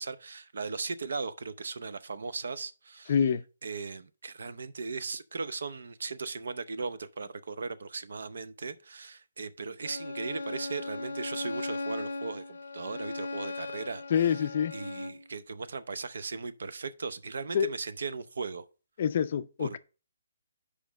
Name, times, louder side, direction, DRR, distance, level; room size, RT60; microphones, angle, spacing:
voice 1, 0.0-3.1 3.6-14.3 14.7-18.6 19.6-19.8, right 4 dB, 70° right, 0.6 m, -37 dB
voice 2, 3.1-3.4 14.1-14.7 17.5-17.7 19.0-19.8, left 8 dB, 40° left, 0.4 m, -26 dB
Bowed string instrument, 9.8-15.3, left 3 dB, 90° left, 0.6 m, -38 dB
5.1 x 5.0 x 6.2 m
hypercardioid pair, 170°, 0 cm